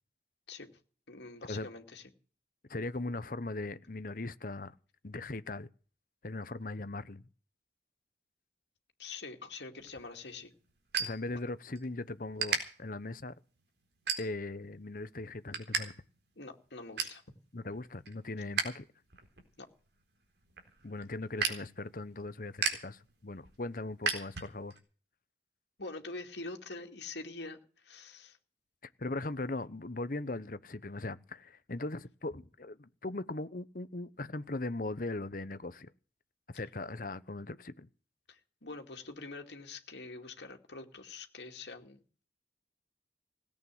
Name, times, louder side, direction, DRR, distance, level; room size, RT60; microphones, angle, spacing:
voice 1, 1.1-2.1 9.0-10.5 16.4-17.2 19.6-19.7 25.8-28.4 38.3-42.0, left 3 dB, 80° left, 2.5 m, -45 dB
voice 2, 2.7-4.7 5.0-5.7 6.2-7.2 11.0-13.3 14.2-15.9 17.5-18.8 20.8-24.8 29.0-35.9 36.5-37.9, left 2 dB, 50° left, 0.9 m, -39 dB
sound 1, 9.8-11.9 12.2-12.6 13.2-13.4 13.9-14.6 15.0-15.8 16.1-16.2 16.6-17.2 17.7-18.7 19.0-24.8, right 5 dB, 70° right, 4.0 m, -36 dB
18.0 x 8.8 x 7.6 m
head